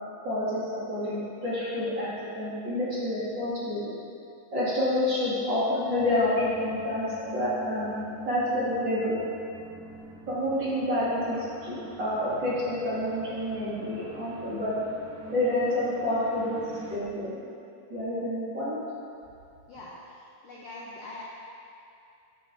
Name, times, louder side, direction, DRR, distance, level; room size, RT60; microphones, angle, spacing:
voice 1, 0.2-2.1 2.3-3.9 4.5-7.9 8.2-9.2 10.3-14.8 15.3-16.6 16.9-17.3 17.9-18.8, left 1 dB, 35° right, -11 dB, 2.5 m, -28 dB
sound 1, 5.9-17.0, right 2 dB, 85° right, 2.4 m, -45 dB
voice 2, 19.7-21.2, left 2 dB, 85° left, -6 dB, 1.4 m, -43 dB
11.0 x 7.3 x 2.7 m, 2.6 s
omnidirectional pair, 3.8 m